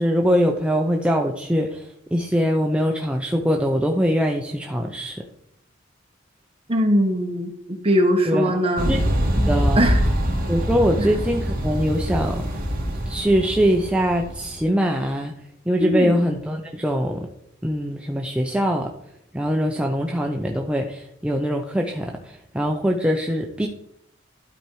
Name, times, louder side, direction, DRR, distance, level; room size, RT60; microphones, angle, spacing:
voice 1, 0.0-1.8 2.1-5.2 8.3-8.6 8.9-9.0 9.5-9.9 10.5-12.4 13.1-15.3 15.7-17.3 17.6-18.9 19.3-23.7, equal, 5° right, 1 dB, 0.6 m, -22 dB
voice 2, 6.7-8.9 9.7-10.0 11.0-11.1 15.8-16.2, equal, 30° right, 3 dB, 1.4 m, -21 dB
sound 1, 8.8-14.6, equal, 45° right, 1.7 m, -24 dB
12.0 x 4.4 x 4.8 m, 0.73 s
head